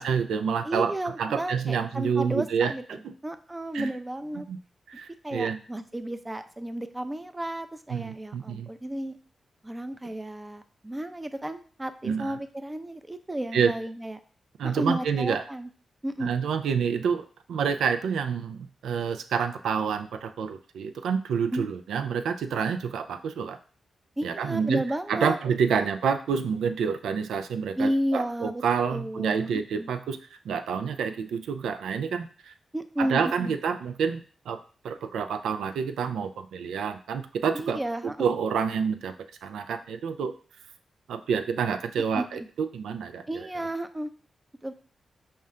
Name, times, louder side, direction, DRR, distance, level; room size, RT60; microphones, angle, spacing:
voice 1, 0.0-0.9 1.2-2.7 3.0-3.1 3.7-3.9 4.5-4.6 4.9-5.6 7.9-8.7 12.0-12.3 13.5-13.7 14.6-15.4 16.2-23.6 24.2-24.8 25.1-30.2 30.4-32.5 33.0-34.2 34.5-34.6 34.8-37.8 38.2-39.1 39.4-40.3 41.1-43.2, right 6 dB, 85° right, 9 dB, 0.3 m, -28 dB
voice 2, 0.6-4.5 4.9-9.2 9.6-14.2 14.6-15.7 16.0-16.3 21.5-21.6 24.2-25.4 25.7-25.9 27.8-28.6 28.9-29.9 32.7-33.6 37.5-38.3 42.1-42.5 43.3-44.1 44.6-44.7, right 1 dB, 20° right, 9 dB, 0.5 m, -32 dB
5.3 x 2.2 x 3.6 m, 0.41 s
supercardioid pair, 45°, 0 cm